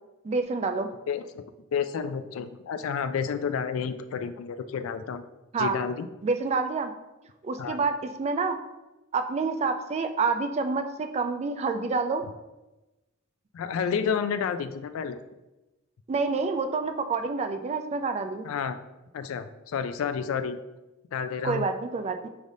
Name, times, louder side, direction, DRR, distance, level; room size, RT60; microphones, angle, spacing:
voice 1, 0.2-0.9 5.5-5.8 6.2-6.9 7.4-8.6 9.1-12.2 16.1-18.5 21.4-22.3, right 4 dB, 30° right, 7 dB, 0.3 m, -28 dB
voice 2, 1.1-1.4 1.7-5.2 5.6-6.1 7.6-7.8 13.5-15.2 18.4-18.8 19.1-20.6 21.1-21.7, left 6 dB, 85° left, 10 dB, 0.3 m, -30 dB
5.1 x 3.3 x 2.6 m, 1.0 s
head